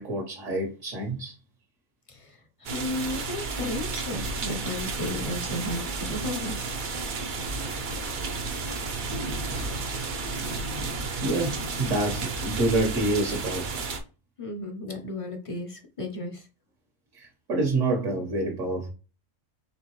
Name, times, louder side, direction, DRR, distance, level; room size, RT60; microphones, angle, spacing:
voice 1, 0.0-1.4 11.2-13.9 17.1-18.9, right 2 dB, 70° right, 1.5 m, -27 dB
sound 1, 2.6-14.0, right 3 dB, 50° right, 0.6 m, -32 dB
voice 2, 2.7-6.6 14.4-16.4, left 2 dB, 35° left, 0.6 m, -34 dB
4.3 x 3.5 x 3.0 m
omnidirectional pair, 1.4 m